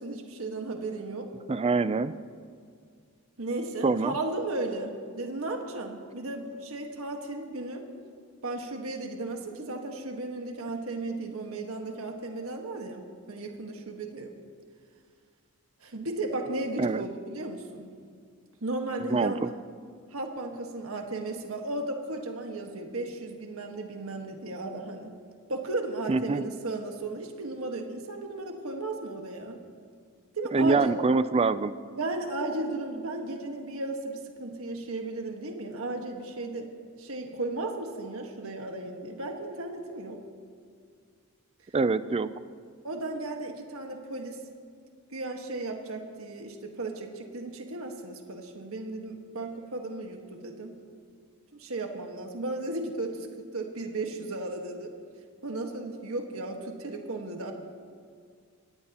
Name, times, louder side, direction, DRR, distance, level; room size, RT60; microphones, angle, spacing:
voice 1, 0.0-1.3 3.4-7.9 8.4-14.3 15.8-17.9 18.6-19.4 20.1-25.1 25.5-29.6 30.3-30.9 32.0-36.7 37.0-40.2 42.8-44.4 45.1-50.8 51.5-54.9 55.4-57.5, right 2 dB, 80° right, 3 dB, 1.5 m, -35 dB
voice 2, 1.5-2.1 3.8-4.1 16.8-17.0 19.0-19.5 26.1-26.4 30.5-31.7 41.7-42.3, right 3 dB, 30° right, 14 dB, 0.4 m, -25 dB
24.0 x 17.5 x 2.9 m, 2.1 s
head